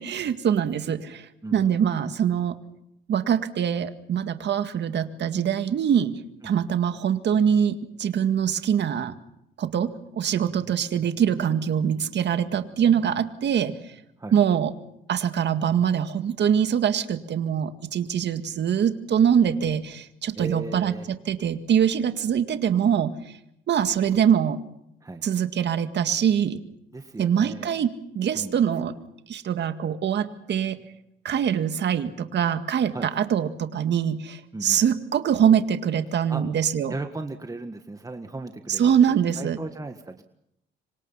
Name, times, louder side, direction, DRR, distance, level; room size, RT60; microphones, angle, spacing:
voice 1, 0.0-2.6 3.1-6.1 6.4-9.1 9.6-14.0 14.3-14.7 15.1-20.9 21.3-23.1 23.7-24.6 25.2-26.6 27.2-28.9 29.3-30.8 31.2-36.9 38.7-39.6, right 8 dB, 60° right, 8 dB, 2.0 m, -23 dB
voice 2, 1.4-1.7 6.4-6.5 14.2-14.4 20.3-21.1 25.0-25.2 26.9-27.8 28.3-28.6 32.9-33.1 34.5-34.8 36.3-36.4 36.9-40.2, right 2 dB, 15° right, 6 dB, 1.7 m, -36 dB
26.5 x 25.0 x 5.8 m, 0.78 s
cardioid pair, 90°, 20 cm